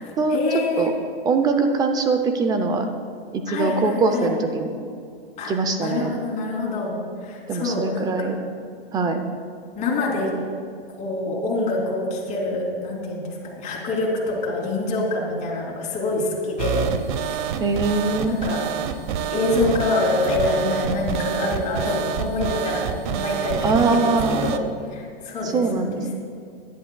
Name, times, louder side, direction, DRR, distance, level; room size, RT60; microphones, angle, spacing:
voice 1, 0.3-0.9 3.5-4.3 5.4-5.5 5.8-6.9 7.2-8.4 9.8-10.3 11.0-16.9 17.5-17.6 18.3-18.6 19.3-24.1 24.4-24.6 24.9-26.0, left 2 dB, 25° left, -2 dB, 2.7 m, -26 dB
voice 2, 1.3-2.9 3.3-4.7 5.5-6.2 7.5-8.4 8.9-9.2 17.6-18.4 23.6-24.5 25.4-26.1, right 3 dB, 15° right, 7 dB, 0.4 m, -22 dB
sound 1, 16.6-24.6, right 8 dB, 50° right, 0.7 m, -27 dB
17.5 x 11.0 x 2.2 m, 2.2 s
hypercardioid pair, 140°, 31 cm